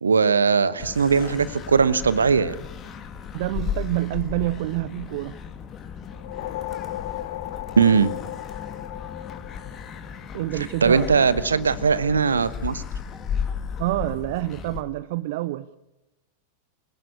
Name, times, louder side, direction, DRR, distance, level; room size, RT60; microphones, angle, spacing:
voice 1, 0.0-2.5 7.8-8.1 10.8-12.8, right 5 dB, 75° right, 16 dB, 1.1 m, -19 dB
sound 1, 0.8-14.8, left 7 dB, 30° left, 2.2 m, -35 dB
voice 2, 3.3-5.3 10.3-11.1 13.8-15.7, right 17 dB, 50° right, 14 dB, 0.6 m, -27 dB
sound 2, 6.0-10.6, left 14 dB, 50° left, 0.8 m, -36 dB
26.5 x 17.5 x 6.8 m, 1.0 s
figure-of-eight pair, 90°, 0 cm